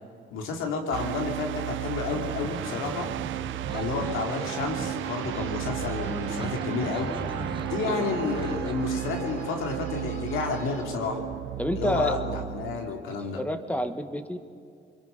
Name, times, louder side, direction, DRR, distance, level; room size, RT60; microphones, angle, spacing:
voice 1, 0.3-3.1 3.7-7.2 7.6-11.2 11.8-13.4, left 4 dB, 90° left, 2 dB, 3.1 m, -30 dB
sound 1, 0.9-12.9, right 14 dB, 75° right, 0.5 m, -34 dB
sound 2, 2.1-8.7, right 3 dB, 25° right, 1.8 m, -39 dB
sound 3, 4.0-10.8, equal, 35° left, 5.7 m, -47 dB
voice 2, 11.6-12.2 13.3-14.4, equal, 5° left, 8 dB, 1.6 m, -29 dB
24.5 x 22.0 x 5.4 m, 2.3 s
cardioid pair, 90°, 20 cm